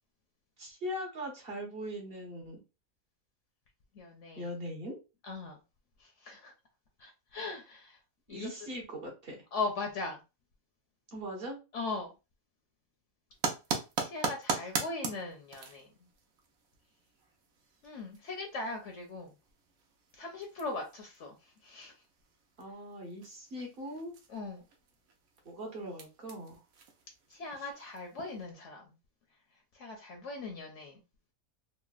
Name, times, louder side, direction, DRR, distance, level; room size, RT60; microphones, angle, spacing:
voice 1, 0.6-2.6 4.3-5.0 8.3-9.3 11.1-11.6 22.6-24.2 25.4-26.5, equal, 45° right, 1.2 m, -40 dB
voice 2, 3.9-4.5 5.2-5.6 6.0-6.5 7.0-8.0 8.3-8.5 9.5-10.2 11.7-12.1 14.0-15.9 17.8-19.3 20.2-21.3 21.6-21.9 24.3-24.6 27.3-28.9 29.7-31.0, left 3 dB, 65° left, 0.9 m, -39 dB
sound 1, 13.3-28.5, right 5 dB, 80° right, 1.1 m, -42 dB
4.0 x 2.1 x 2.3 m
omnidirectional pair, 1.5 m